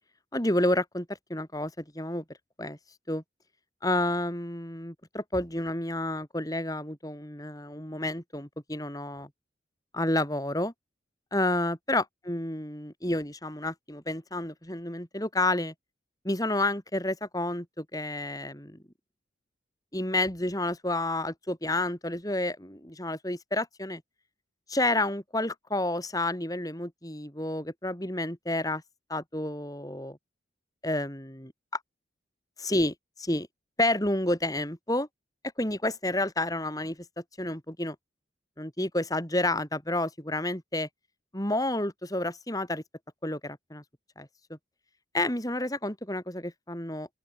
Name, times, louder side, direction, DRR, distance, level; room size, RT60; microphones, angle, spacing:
voice 1, 0.3-2.2 2.6-2.8 3.1-3.2 3.8-9.3 9.9-10.7 11.3-15.7 16.2-18.8 19.9-24.0 24.7-28.8 29.1-30.2 30.8-31.5 32.6-33.5 33.8-35.1 35.6-37.0 37.4-38.0 38.6-40.9 41.3-42.8 43.2-43.8 44.2-44.3 45.1-47.1, left 1 dB, 20° left, 5.5 m, -30 dB
open air
head